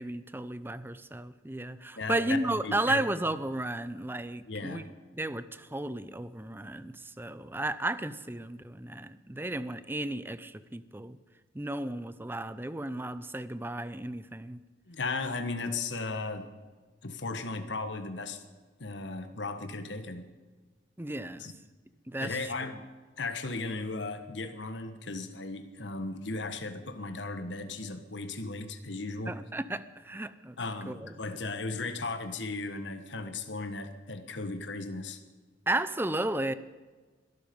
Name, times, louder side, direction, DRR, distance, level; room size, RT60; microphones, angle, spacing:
voice 1, 0.0-4.8 5.2-11.2 11.5-14.6 21.0-21.4 22.1-22.4 22.6-22.7 29.3-30.6 30.9-31.1 35.7-36.5, right 1 dB, 10° right, 14 dB, 0.6 m, -33 dB
voice 2, 1.9-3.0 4.4-4.9 14.9-16.5 17.0-18.4 18.8-20.3 21.4-21.6 22.2-22.8 23.2-29.4 30.6-35.2, left 3 dB, 80° left, 8 dB, 1.4 m, -36 dB
21.5 x 12.0 x 5.3 m, 1.4 s
head